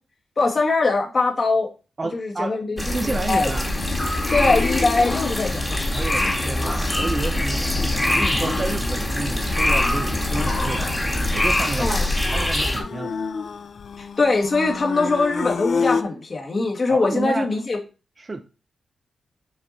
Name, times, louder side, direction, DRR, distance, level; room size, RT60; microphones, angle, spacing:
voice 1, 0.4-1.7 2.1-3.0 3.2-3.5 4.3-5.8 11.8-12.0 14.0-17.8, left 3 dB, 40° left, 1.8 m, -22 dB
voice 2, 2.0-3.7 4.2-4.3 5.9-11.0 11.3-12.0 12.3-13.2 16.9-17.5 18.2-18.4, right 3 dB, 30° right, 0.6 m, -30 dB
sound 1, 2.8-12.8, left 1 dB, 10° left, 1.7 m, -23 dB
sound 2, 3.7-16.0, left 5 dB, 60° left, 0.5 m, -31 dB
7.1 x 4.6 x 4.1 m
wide cardioid pair, 105°, 0 cm